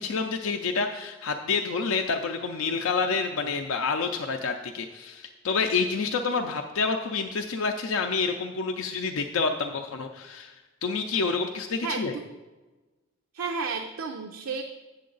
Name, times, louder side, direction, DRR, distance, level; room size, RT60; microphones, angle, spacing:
voice 1, 0.0-10.5 10.8-12.2, left 4 dB, 75° left, 4 dB, 0.5 m, -28 dB
voice 2, 11.8-12.3 13.3-14.6, right 5 dB, 85° right, 4 dB, 0.5 m, -32 dB
8.5 x 7.1 x 3.9 m, 1.2 s
head